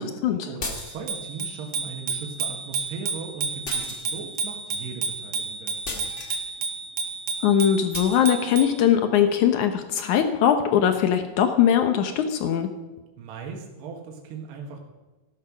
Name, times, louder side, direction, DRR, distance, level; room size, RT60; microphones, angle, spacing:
voice 1, 0.0-6.1 13.2-14.8, right 5 dB, 75° right, 1 dB, 3.7 m, -38 dB
sound 1, 0.6-1.3 3.6-4.4 5.8-6.4 7.9-8.2, left 3 dB, 50° left, 0.8 m, -36 dB
Bicycle bell, 0.7-8.8, right 4 dB, 55° right, 2.8 m, -31 dB
voice 2, 7.4-12.7, left 9 dB, 85° left, 7 dB, 1.7 m, -21 dB
15.5 x 12.5 x 6.1 m, 1.2 s
omnidirectional pair, 4.8 m